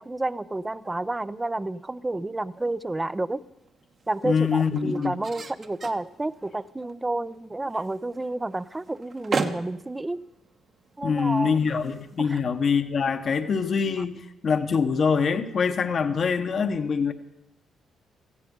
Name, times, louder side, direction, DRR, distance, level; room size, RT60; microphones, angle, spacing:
voice 1, 0.0-3.4 4.1-10.2 11.0-11.6 12.2-12.4, right 2 dB, 15° right, 17 dB, 0.5 m, -30 dB
sound 1, 2.4-12.8, right 4 dB, 45° right, 1.2 m, -38 dB
voice 2, 4.2-5.1 11.0-17.1, left 6 dB, 50° left, 8 dB, 1.1 m, -24 dB
17.0 x 15.0 x 5.3 m, 0.87 s
cardioid pair, 90°, 0 cm